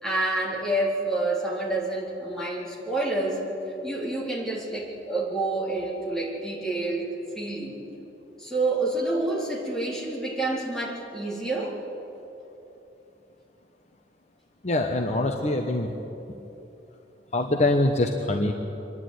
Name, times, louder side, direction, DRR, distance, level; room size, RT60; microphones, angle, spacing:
voice 1, 0.0-3.5 3.8-7.1 7.3-7.8 8.4-11.8, right 2 dB, 5° left, -5 dB, 3.9 m, -28 dB
voice 2, 14.6-15.9 17.3-18.5, left 2 dB, 40° left, 3 dB, 1.1 m, -24 dB
25.0 x 11.0 x 9.5 m, 3.0 s
head